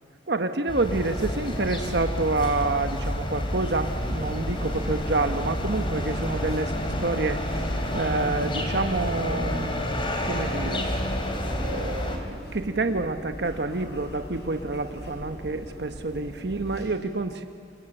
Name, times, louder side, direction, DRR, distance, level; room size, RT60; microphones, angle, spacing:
voice 1, 0.3-6.7 7.0-9.9 10.2-10.8 11.6-17.5, right 3 dB, 65° right, 7 dB, 1.1 m, -28 dB
sound 1, 0.7-12.2, left 1 dB, 30° left, 3.2 m, -29 dB
sound 2, 3.4-16.8, equal, 65° left, 6.9 m, -40 dB
28.5 x 22.5 x 9.0 m, 2.3 s
head